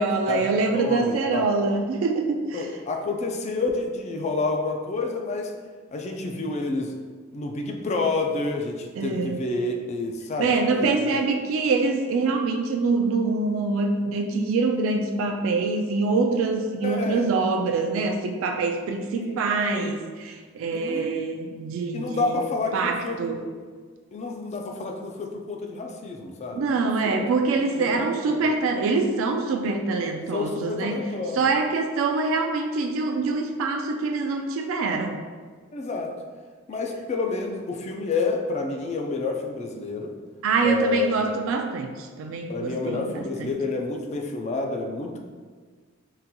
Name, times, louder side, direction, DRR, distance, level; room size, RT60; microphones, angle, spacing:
voice 1, 0.0-2.7 9.0-9.4 10.4-22.3 22.7-23.4 26.5-31.1 31.3-35.2 40.4-43.5, right 3 dB, 90° right, 3 dB, 0.3 m, -25 dB
voice 2, 0.7-1.5 2.5-5.5 5.9-6.9 7.3-11.1 16.8-17.3 19.2-19.4 19.7-20.0 20.7-21.1 21.9-23.5 24.1-26.7 27.0-27.3 27.7-28.5 30.3-31.5 35.7-36.1 36.7-40.1 40.6-41.3 42.5-45.2, left 3 dB, 35° left, 2 dB, 0.3 m, -29 dB
3.8 x 2.8 x 2.2 m, 1.6 s
head